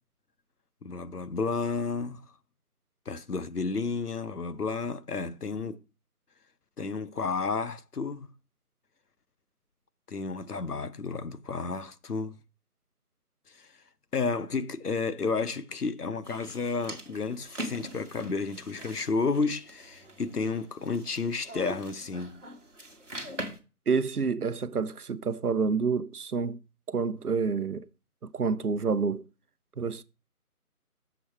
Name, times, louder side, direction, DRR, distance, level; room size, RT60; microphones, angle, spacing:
voice 1, 0.8-2.2 3.1-5.8 6.8-8.3 10.1-12.4 13.6-13.7 14.1-22.4, left 4 dB, 90° left, 0.9 m, -31 dB
sound 1, 16.2-23.6, right 1 dB, 50° right, 1.5 m, -43 dB
voice 2, 23.9-26.6 26.9-27.9 28.3-29.2 29.8-30.0, right 5 dB, 75° right, 0.8 m, -28 dB
7.1 x 6.5 x 4.5 m
figure-of-eight pair, 175°, 45 cm